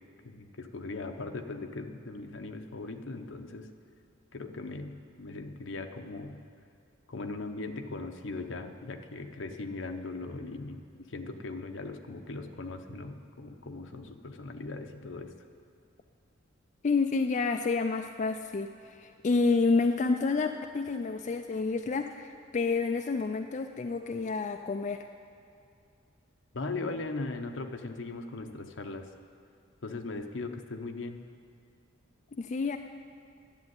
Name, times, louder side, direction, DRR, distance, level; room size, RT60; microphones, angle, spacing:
voice 1, 0.2-3.7 4.3-6.4 7.1-10.8 11.1-15.3 26.5-29.1 29.8-31.2, left 3 dB, 65° left, 6 dB, 0.8 m, -39 dB
voice 2, 16.8-25.1 32.3-32.8, left 4 dB, 35° left, 5 dB, 0.4 m, -29 dB
10.5 x 7.8 x 9.5 m, 2.4 s
head